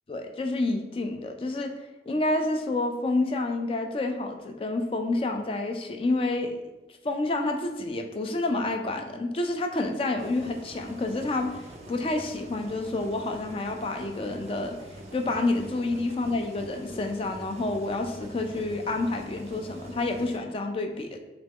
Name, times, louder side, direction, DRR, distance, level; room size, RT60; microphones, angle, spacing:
voice 1, 0.1-1.7 2.1-6.6 7.0-14.8 15.1-21.2, left 2 dB, 30° left, 4 dB, 0.3 m, -29 dB
sound 1, 10.2-20.4, right 1 dB, 35° right, 0.4 m, -45 dB
3.4 x 2.9 x 3.5 m, 1.1 s
head